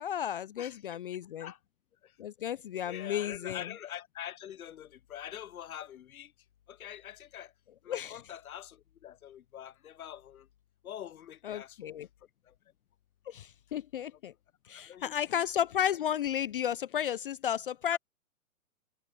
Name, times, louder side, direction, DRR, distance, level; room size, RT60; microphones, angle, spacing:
voice 1, 0.0-1.5 2.2-3.7 7.9-8.2 11.4-12.1 13.3-14.3 14.7-18.0, left 10 dB, 40° left, 0.4 m, -33 dB
voice 2, 2.8-6.3 6.7-7.5 7.8-8.8 9.0-10.4 10.8-11.9 14.9-15.1 17.9-18.0, left 10 dB, 80° left, 0.8 m, -44 dB
hypercardioid pair, 140°, 42 cm